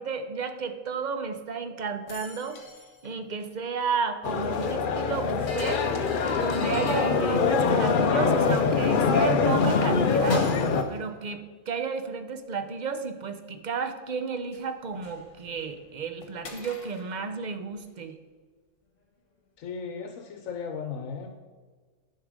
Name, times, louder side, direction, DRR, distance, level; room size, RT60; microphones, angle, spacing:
voice 1, 0.0-2.6 3.0-5.8 6.3-10.5 10.9-18.1, right 5 dB, 45° right, 8 dB, 0.7 m, -32 dB
sound 1, 2.1-3.1 3.4-3.5 5.5-7.9 10.1-11.0 14.5-14.6 14.9-15.9 16.2-17.2, left 3 dB, 70° left, 1.5 m, -42 dB
sound 2, 4.2-10.8, left 5 dB, 50° left, 0.6 m, -24 dB
voice 2, 19.6-21.3, left 6 dB, 85° left, 5 dB, 1.1 m, -36 dB
10.5 x 5.5 x 5.0 m, 1.4 s
omnidirectional pair, 1.4 m